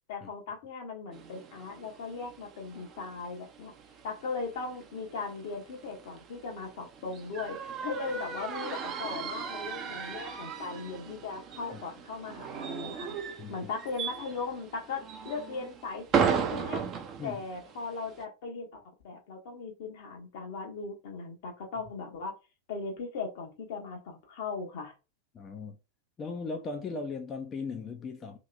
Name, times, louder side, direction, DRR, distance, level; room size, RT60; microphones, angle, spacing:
voice 1, 0.1-3.7 4.0-13.2 13.5-16.8 17.2-22.3 22.7-24.9, left 4 dB, 50° left, 1.0 m, -38 dB
sound 1, 1.1-18.2, right 6 dB, 30° right, 0.6 m, -37 dB
voice 2, 25.3-25.8 26.2-28.4, left 4 dB, 25° left, 0.5 m, -37 dB
2.9 x 2.8 x 2.4 m
figure-of-eight pair, 90°, 0 cm